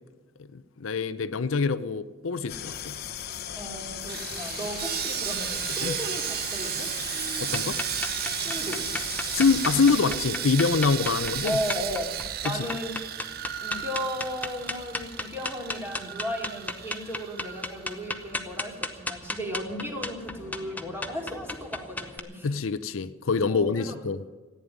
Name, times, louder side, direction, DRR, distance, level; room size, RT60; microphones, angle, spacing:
voice 1, 0.5-3.0 5.8-5.9 7.4-7.8 9.3-11.6 12.4-12.6 22.4-24.2, left 5 dB, 75° left, 13 dB, 0.6 m, -25 dB
sound 1, 2.5-10.0, left 9 dB, 50° left, 0.9 m, -37 dB
voice 2, 3.6-6.9 8.4-8.8 11.0-11.1 11.4-12.1 12.4-12.9 13.6-22.5 23.5-24.0, equal, 10° right, 1 dB, 2.7 m, -35 dB
Sawing, 4.1-18.3 18.6-18.8 19.2-19.3, right 12 dB, 45° right, 0.5 m, -34 dB
sound 2, 7.5-22.2, left 2 dB, 10° left, 0.8 m, -35 dB
14.5 x 9.4 x 9.5 m, 1.3 s
head